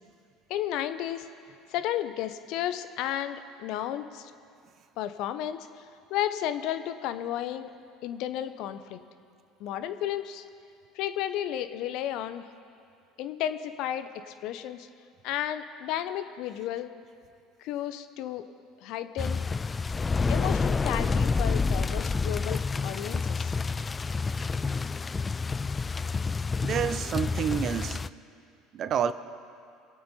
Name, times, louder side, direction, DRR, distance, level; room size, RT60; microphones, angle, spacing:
voice 1, 0.5-1.3 1.7-4.3 5.0-5.8 6.1-7.7 8.0-9.0 9.6-10.4 10.9-12.5 13.2-14.9 15.2-16.9 17.6-18.4 18.8-19.4 20.1-23.5, left 11 dB, 60° left, 11 dB, 0.7 m, -33 dB
sound 1, 19.2-28.1, left 4 dB, 25° left, 0.4 m, -28 dB
voice 2, 26.6-28.0 28.7-29.1, right 8 dB, 45° right, 14 dB, 0.7 m, -28 dB
24.5 x 8.6 x 4.3 m, 2.4 s
hypercardioid pair, 70°, 0 cm